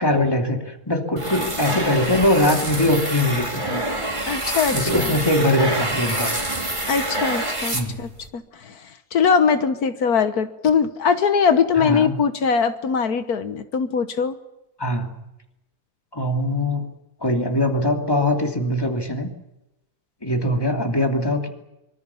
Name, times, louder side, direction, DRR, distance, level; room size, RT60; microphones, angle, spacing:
voice 1, 0.0-3.8 4.7-6.3 7.7-8.0 11.8-12.1 14.8-15.2 16.1-16.9 17.2-19.3 20.2-21.5, left 1 dB, 15° left, 3 dB, 2.9 m, -22 dB
sound 1, 1.2-8.3, right 1 dB, 20° right, 3.3 m, -26 dB
voice 2, 4.3-5.1 6.9-8.7 9.1-14.4, left 6 dB, 80° left, 10 dB, 1.7 m, -21 dB
25.0 x 24.5 x 7.2 m, 0.94 s
omnidirectional pair, 1.6 m